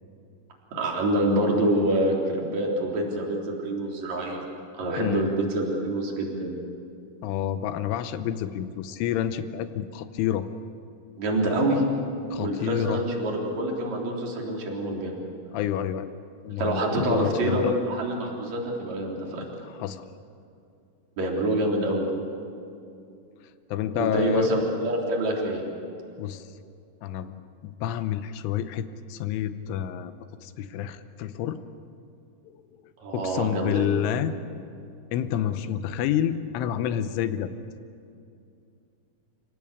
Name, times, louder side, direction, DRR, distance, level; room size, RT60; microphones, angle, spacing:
voice 1, 0.7-4.4 4.8-6.6 11.2-11.8 12.4-15.2 16.6-19.4 21.2-22.1 24.0-25.6 33.0-33.9, right 1 dB, 35° right, -1 dB, 4.4 m, -26 dB
voice 2, 7.2-10.5 12.3-13.0 15.5-16.1 16.4-17.8 19.6-20.0 23.7-24.5 26.2-26.5 27.0-30.1 30.4-31.6 32.4-32.6 32.8-34.3 35.1-37.5, left 10 dB, 80° left, 10 dB, 3.2 m, -29 dB
29.5 x 17.5 x 8.5 m, 2.6 s
omnidirectional pair, 5.9 m